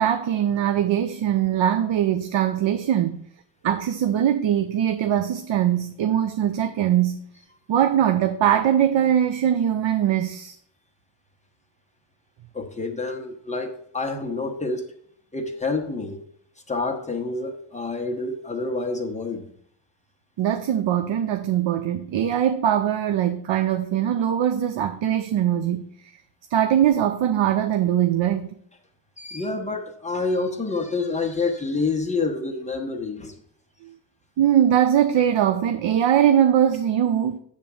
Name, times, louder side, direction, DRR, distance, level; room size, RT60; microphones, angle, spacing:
voice 1, 0.0-3.2 3.6-7.3 7.7-10.5 20.4-25.9 26.5-28.6 33.8-33.9 34.4-37.4, right 10 dB, 80° right, 0.7 m, -21 dB
voice 2, 12.5-14.8 15.3-16.2 16.7-19.5 29.2-33.3, left 3 dB, 15° left, 1.1 m, -28 dB
9.2 x 3.7 x 7.0 m
wide cardioid pair, 155°, 45 cm